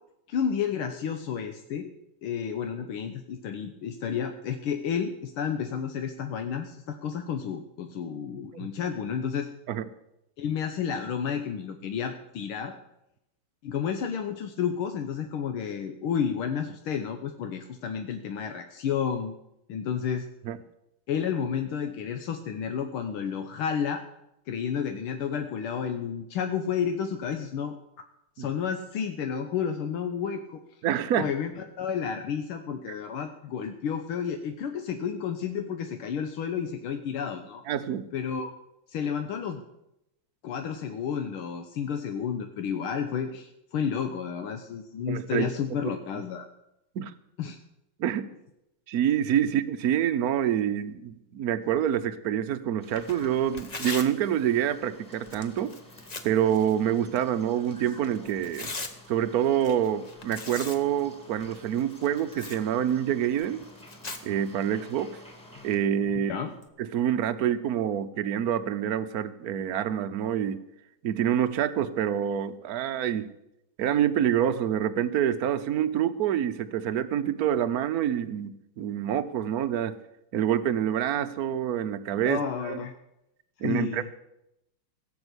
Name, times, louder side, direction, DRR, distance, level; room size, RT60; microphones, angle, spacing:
voice 1, 0.3-1.9 2.2-9.5 10.4-12.7 13.6-19.3 19.7-20.3 21.1-24.0 24.5-27.8 28.4-30.6 31.1-37.6 38.1-38.5 38.9-39.6 40.4-46.5 47.4-47.6 66.3-66.5 82.3-82.9 83.6-84.1, left 7 dB, 80° left, 6 dB, 1.8 m, -31 dB
voice 2, 30.8-31.3 37.7-38.1 45.1-45.5 46.9-47.1 48.0-48.3 48.9-55.7 56.2-58.7 59.1-63.6 64.2-65.1 65.6-66.3 66.8-70.6 71.0-73.3 73.8-80.0 80.3-82.8 83.6-84.1, right 10 dB, 60° right, 12 dB, 1.0 m, -27 dB
Tearing, 52.8-66.7, left 3 dB, 30° left, 0.7 m, -44 dB
sound 1, 52.8-65.8, equal, 5° left, 2.3 m, -52 dB
17.0 x 7.2 x 8.1 m, 0.85 s
omnidirectional pair, 2.3 m